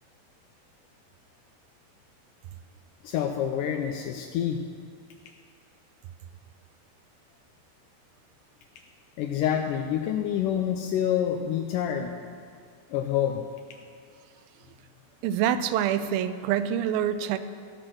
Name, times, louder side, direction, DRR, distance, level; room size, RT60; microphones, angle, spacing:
voice 1, 3.0-4.6 9.2-12.4 12.9-13.5, left 9 dB, 80° left, 4 dB, 1.9 m, -27 dB
voice 2, 15.2-17.4, right 10 dB, 85° right, 11 dB, 2.4 m, -26 dB
15.0 x 6.1 x 6.4 m, 2.2 s
omnidirectional pair, 4.2 m